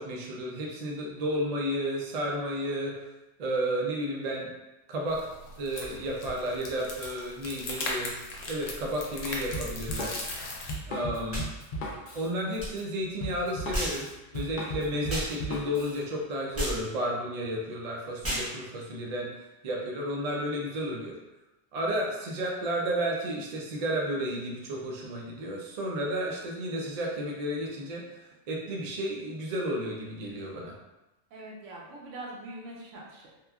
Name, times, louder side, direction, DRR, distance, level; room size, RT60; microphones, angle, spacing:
voice 1, 0.0-2.9 3.4-4.5 4.9-5.3 5.6-8.1 8.5-10.2 10.9-11.4 12.1-14.1 14.3-19.3 19.6-21.1 21.7-28.2 28.5-30.7, equal, 60° right, -2 dB, 0.4 m, -32 dB
sound 1, 5.1-10.7, left 2 dB, 85° left, 0.9 m, -38 dB
Drum kit, 9.5-16.0, equal, 60° left, 0.5 m, -37 dB
sound 2, 11.3-11.5 12.6-12.7 13.7-14.0 15.1-15.3 16.6-16.8 18.2-18.5, equal, 15° right, 0.7 m, -31 dB
voice 2, 31.3-33.4, right 2 dB, 85° right, -3 dB, 1.0 m, -43 dB
2.9 x 2.2 x 2.3 m, 1.0 s
omnidirectional pair, 1.3 m